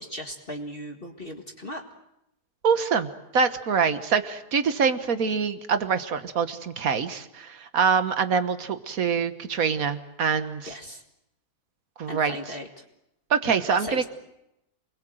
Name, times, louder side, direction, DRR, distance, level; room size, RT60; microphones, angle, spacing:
voice 1, 0.0-1.8 10.7-11.0 12.1-12.8 13.7-14.1, equal, 35° left, 2 dB, 2.0 m, -37 dB
voice 2, 2.6-10.7 12.0-12.4 13.3-14.1, right 6 dB, 60° right, 10 dB, 1.8 m, -25 dB
28.5 x 21.5 x 7.9 m, 0.86 s
omnidirectional pair, 1.7 m